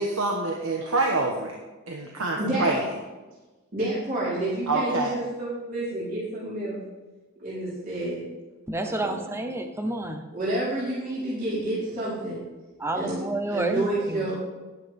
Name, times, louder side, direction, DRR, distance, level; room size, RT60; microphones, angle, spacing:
voice 1, 0.0-1.6 1.9-2.8 4.7-5.1, right 2 dB, 75° right, 0 dB, 1.3 m, -26 dB
voice 2, 2.4-2.8 3.7-6.8 7.4-8.3 9.0-9.2 10.3-12.4 12.9-14.3, right 1 dB, 40° right, -9 dB, 4.2 m, -29 dB
voice 3, 8.7-10.2 12.8-14.2, right 1 dB, 10° right, 5 dB, 0.9 m, -29 dB
12.5 x 11.0 x 3.6 m, 1.2 s
head